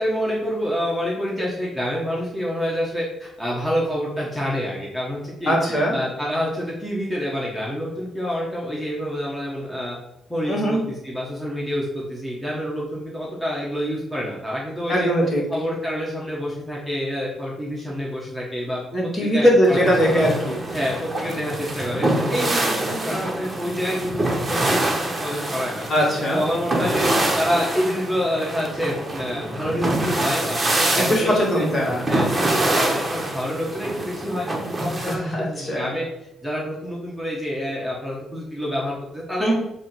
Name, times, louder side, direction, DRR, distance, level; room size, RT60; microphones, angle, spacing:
voice 1, 0.0-10.0 10.3-15.1 15.5-19.8 20.1-20.2 20.7-31.7 32.1-36.1 36.4-39.5, equal, ahead, -5 dB, 1.5 m, -27 dB
voice 2, 5.5-6.0 10.5-10.8 14.9-15.4 18.9-20.6 23.0-23.2 25.9-26.4 30.9-32.0 32.4-32.5 35.0-35.9 39.4-39.5, equal, 35° left, -3 dB, 2.2 m, -20 dB
sound 1, 19.6-35.1, right 1 dB, 20° right, 1.2 m, -25 dB
7.3 x 3.0 x 4.5 m, 0.87 s
cardioid pair, 90°, 0 cm